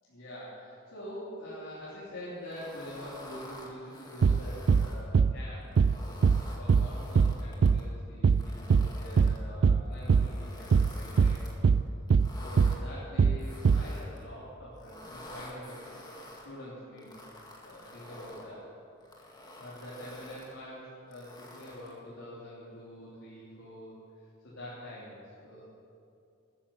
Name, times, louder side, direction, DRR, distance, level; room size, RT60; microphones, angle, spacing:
voice 1, 0.0-6.2 6.6-11.5 12.4-15.8 16.4-17.2 17.6-18.7 19.5-24.0 24.4-25.6, equal, 70° left, -9 dB, 3.5 m, -45 dB
sound 1, 2.5-5.0 5.6-7.8 8.3-9.4 9.9-11.5 12.1-12.8 13.4-14.2 14.8-16.5 17.0-18.5 19.0-20.5 21.1-22.0, left 1 dB, 20° left, 2.0 m, -49 dB
sound 2, 4.2-4.4 4.7-4.9 5.1-5.3 5.8-6.0 6.2-6.4 6.7-6.9 7.2-7.4 7.6-7.8 8.2-8.4 8.7-8.9 9.2-9.4 9.6-9.8 10.1-10.3 10.7-10.9 11.2-11.4 11.6-11.8 12.1-12.3 12.6-12.8 13.2-13.4 13.7-13.9, right 5 dB, 55° right, 0.4 m, -22 dB
13.5 x 10.0 x 8.4 m, 2.5 s
head